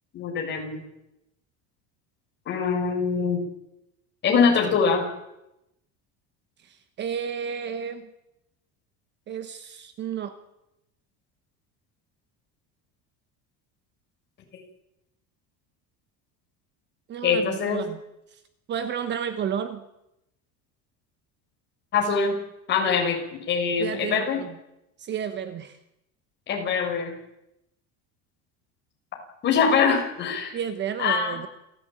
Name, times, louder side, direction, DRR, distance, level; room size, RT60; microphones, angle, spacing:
voice 1, 0.1-0.8 2.5-3.4 4.2-5.1 17.2-17.8 21.9-22.4 22.7-24.4 26.5-27.1 29.4-30.6 31.0-31.4, left 6 dB, 30° left, 1 dB, 6.6 m, -23 dB
voice 2, 6.6-8.1 9.3-10.3 17.1-18.0 18.3-18.4 18.7-19.8 23.8-24.5 25.0-25.8 30.5-31.5, right 8 dB, 30° right, 10 dB, 1.3 m, -32 dB
29.0 x 15.5 x 9.0 m, 0.89 s
cardioid pair, 180°, 35 cm